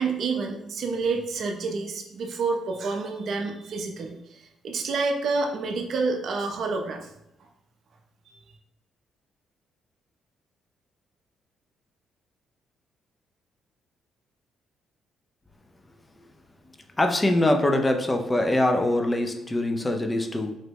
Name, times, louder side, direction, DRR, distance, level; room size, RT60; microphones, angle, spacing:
voice 1, 0.0-7.1 8.3-8.4, right 4 dB, 65° right, 3 dB, 0.5 m, -28 dB
voice 2, 17.0-20.5, left 1 dB, 15° left, 5 dB, 0.4 m, -23 dB
3.8 x 2.1 x 3.3 m, 0.86 s
cardioid pair, 90°, 0 cm